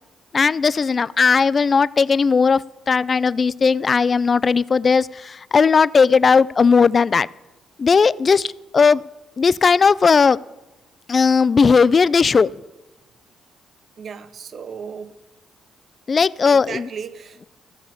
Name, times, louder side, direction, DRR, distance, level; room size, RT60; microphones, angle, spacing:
voice 1, 0.3-7.3 7.8-9.0 9.4-10.4 11.1-12.5 16.1-16.9, left 5 dB, 40° left, 0.3 m, -17 dB
voice 2, 14.0-15.1 16.4-17.5, right 6 dB, 55° right, 0.7 m, -35 dB
14.5 x 5.7 x 8.4 m
cardioid pair, 90°, 0 cm